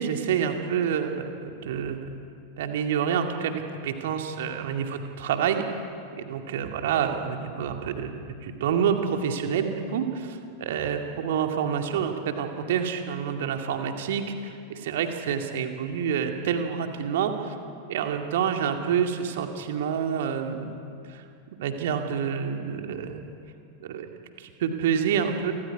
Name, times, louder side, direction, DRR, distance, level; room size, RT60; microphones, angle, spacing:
voice 1, 0.0-2.0 2.6-5.6 6.2-17.5 17.9-20.7 21.1-21.2 21.6-23.2 23.8-24.1 24.4-25.5, right 7 dB, 55° right, 4 dB, 2.3 m, -28 dB
29.0 x 24.0 x 4.9 m, 2.4 s
figure-of-eight pair, 90°, 0 cm